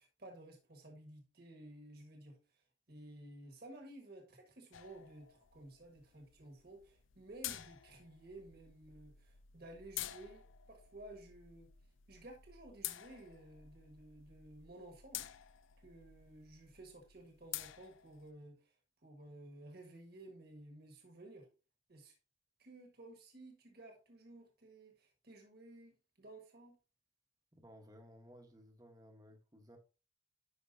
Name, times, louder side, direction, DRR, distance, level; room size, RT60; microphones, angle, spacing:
voice 1, 0.0-2.6 2.9-11.7 12.1-15.3 15.8-18.7 19.0-21.5 21.9-22.1 22.6-26.8, right 1 dB, 50° right, 1.6 m, -55 dB
sound 1, 4.7-18.3, left 13 dB, 75° left, 0.5 m, -50 dB
voice 2, 27.5-29.8, equal, 20° right, 1.1 m, -58 dB
10.5 x 5.0 x 2.7 m
head